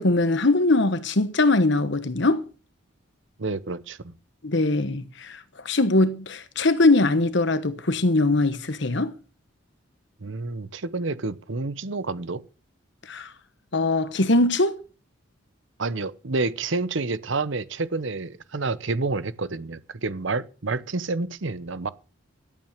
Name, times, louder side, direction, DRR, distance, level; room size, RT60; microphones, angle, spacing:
voice 1, 0.0-2.4 4.4-5.4 5.6-9.1 13.1-13.3 13.7-14.8, left 2 dB, 55° left, 1.2 m, -21 dB
voice 2, 3.4-4.1 10.2-12.4 15.8-21.9, right 3 dB, 65° right, 0.8 m, -29 dB
12.0 x 8.9 x 6.6 m
head